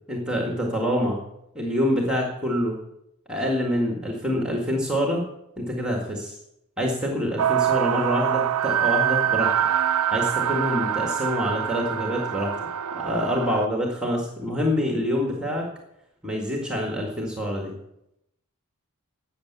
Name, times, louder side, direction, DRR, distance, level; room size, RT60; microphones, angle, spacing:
voice 1, 0.1-1.2 1.6-2.8 3.3-5.2 5.6-6.4 6.8-9.5 10.1-12.5 13.0-15.7 16.2-17.7, equal, 5° right, 1 dB, 1.8 m, -26 dB
sound 1, 7.4-13.7, right 10 dB, 85° right, 0.5 m, -25 dB
12.0 x 8.4 x 8.1 m, 0.84 s
head